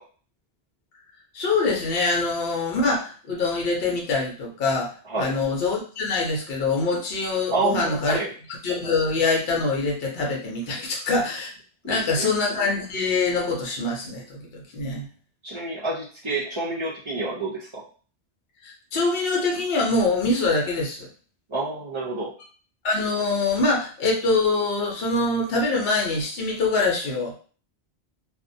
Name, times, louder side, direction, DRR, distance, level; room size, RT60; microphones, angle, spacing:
voice 1, 1.3-4.9 5.2-8.2 8.6-11.5 11.8-15.1 18.6-21.1 22.8-27.3, left 3 dB, 65° left, -1 dB, 0.9 m, -24 dB
voice 2, 7.5-8.3 10.8-10.9 11.8-12.3 15.4-17.8 21.5-22.3, right 3 dB, 40° right, -4 dB, 0.4 m, -28 dB
2.5 x 2.1 x 2.6 m, 0.40 s
omnidirectional pair, 1.1 m